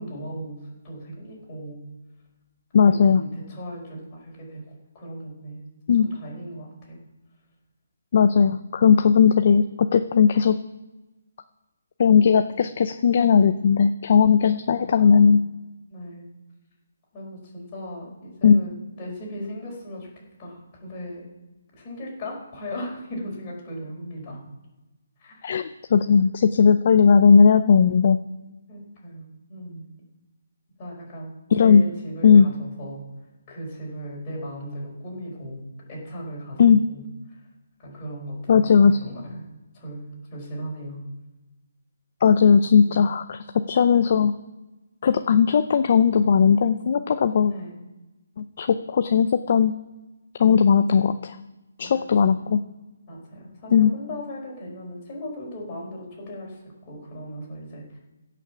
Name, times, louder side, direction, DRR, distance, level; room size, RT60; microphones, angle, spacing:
voice 1, 0.0-1.8 2.9-5.6 5.9-7.0 14.7-15.3 15.9-16.3 17.1-21.2 21.7-24.4 25.2-25.6 28.7-29.9 30.8-31.3 31.6-33.0 33.5-35.6 35.9-36.6 36.9-37.0 37.3-37.4 37.8-39.4 39.7-41.0 42.8-42.9 47.5-47.8 51.8-52.4 53.1-58.0, equal, 15° left, -4 dB, 4.5 m, -37 dB
voice 2, 2.7-3.2 5.9-6.1 8.1-10.6 12.0-15.4 18.4-18.6 25.4-28.2 31.5-31.8 32.2-32.5 36.6-36.8 38.5-39.0 42.2-43.4 43.7-44.3 45.0-47.5 48.4-49.7 50.4-51.4 51.8-52.6 53.7-53.9, left 6 dB, 35° left, 9 dB, 0.5 m, -17 dB
16.5 x 5.9 x 7.2 m, 1.1 s
hypercardioid pair, 175°, 0 cm